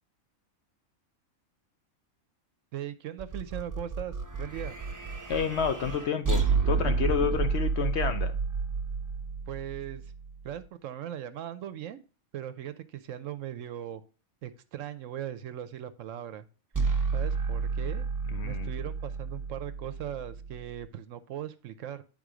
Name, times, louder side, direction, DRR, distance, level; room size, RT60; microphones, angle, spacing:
voice 1, 2.7-4.8 9.5-10.1 10.4-12.0 12.3-14.0 14.4-16.5 16.8-16.9 17.1-18.1 18.4-22.0, right 11 dB, 70° right, 0.9 m, -39 dB
sound 1, 3.2-10.5 16.7-20.8, right 5 dB, 20° right, 0.5 m, -31 dB
voice 2, 5.3-8.3 18.3-18.7, left 7 dB, 60° left, 0.8 m, -29 dB
9.6 x 3.7 x 4.9 m
omnidirectional pair, 1.5 m